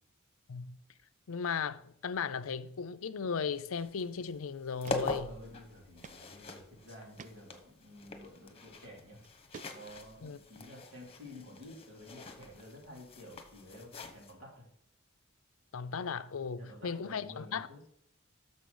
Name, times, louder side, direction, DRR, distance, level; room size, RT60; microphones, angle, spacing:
voice 1, 1.3-5.3 10.2-10.4 15.7-17.7, left 6 dB, 75° left, 0.5 m, -36 dB
sound 1, 3.5-14.3, left 2 dB, 30° left, 1.2 m, -44 dB
sound 2, 4.2-4.3 4.8-5.0 5.3-5.4 6.0-6.2 6.6-6.7 7.2-7.3 8.5-8.7 9.2-10.1, right 5 dB, 35° right, 0.3 m, -50 dB
voice 2, 5.2-9.2 9.7-14.7 16.6-17.8, left 1 dB, 70° right, 3.8 m, -51 dB
6.7 x 6.3 x 7.0 m
head